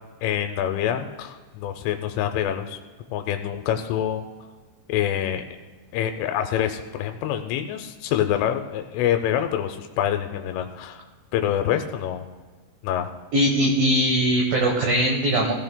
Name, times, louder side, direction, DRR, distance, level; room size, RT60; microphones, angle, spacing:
voice 1, 0.2-2.8 3.1-4.2 4.9-5.4 5.9-11.0 11.3-12.3 12.8-13.1, left 10 dB, 90° left, 6 dB, 3.1 m, -26 dB
voice 2, 13.3-15.5, right 1 dB, 70° right, 0 dB, 2.3 m, -20 dB
16.5 x 15.0 x 2.2 m, 1.4 s
omnidirectional pair, 5.5 m